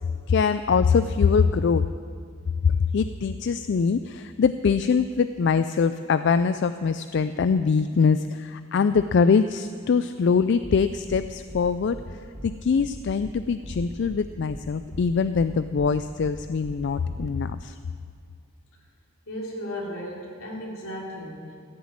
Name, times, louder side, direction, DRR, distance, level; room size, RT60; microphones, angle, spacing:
voice 1, 0.3-1.8 2.6-12.0 12.4-17.8, left 5 dB, 55° left, 11 dB, 0.3 m, -23 dB
sound 1, 10.6-10.8 11.1-11.2 11.5-11.6 11.9-12.1 12.3-12.5 12.8-12.9 13.2-13.3 13.6-14.2 14.5-14.6 14.9-15.1 15.3-15.5 15.8-15.9 16.2-16.3 16.6-16.8 17.1-17.3, right 1 dB, 15° right, 1.0 m, -39 dB
voice 2, 19.3-21.6, equal, 75° left, -3 dB, 3.2 m, -35 dB
14.5 x 7.2 x 8.8 m, 2.3 s
head